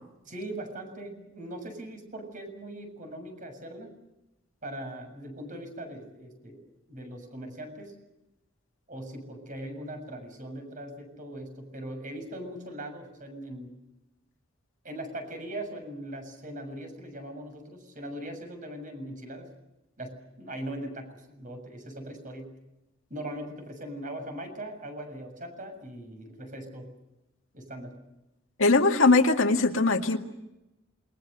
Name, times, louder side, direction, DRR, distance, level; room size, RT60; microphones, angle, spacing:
voice 1, 0.3-3.9 4.6-7.9 8.9-13.7 14.8-19.5 20.0-22.5 23.1-26.9 27.5-27.9, right 1 dB, 40° right, 6 dB, 7.0 m, -40 dB
voice 2, 28.6-30.2, left 3 dB, 75° left, 4 dB, 2.1 m, -21 dB
28.0 x 22.5 x 6.8 m, 0.93 s
head